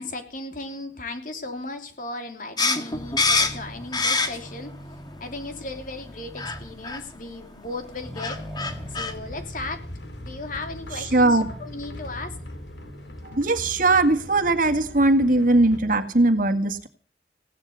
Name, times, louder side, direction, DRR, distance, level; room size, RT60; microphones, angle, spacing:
voice 1, 0.0-4.7 5.2-8.4 8.9-9.9 10.2-12.4, left 2 dB, 50° left, 6 dB, 3.2 m, -36 dB
sound 1, 2.6-4.6 5.0-5.8 6.4-6.6 6.8-7.0 7.8-7.9 8.2-9.1, left 3 dB, 25° left, 1.9 m, -25 dB
Accelerating revving vroom, 2.9-13.3, equal, ahead, 2.7 m, -42 dB
sound 2, 8.7-15.8, left 1 dB, 80° left, 2.8 m, -41 dB
voice 2, 11.0-11.5 13.3-16.9, right 2 dB, 50° right, 7 dB, 1.9 m, -20 dB
17.0 x 12.0 x 6.8 m, 0.41 s
head